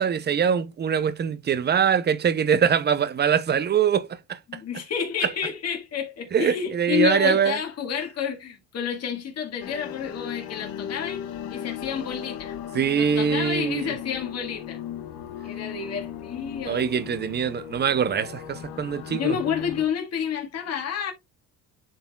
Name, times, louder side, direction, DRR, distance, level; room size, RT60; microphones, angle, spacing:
voice 1, 0.0-4.4 6.3-7.6 12.7-13.9 16.7-19.4, right 7 dB, 30° right, 0.5 m, -23 dB
voice 2, 4.5-11.2 11.5-12.6 13.0-14.8 15.4-16.8 19.1-21.1, left 8 dB, 45° left, 1.9 m, -29 dB
sound 1, 9.6-19.9, left 10 dB, 85° left, 1.2 m, -37 dB
11.0 x 3.9 x 2.2 m
cardioid pair, 140°, 36 cm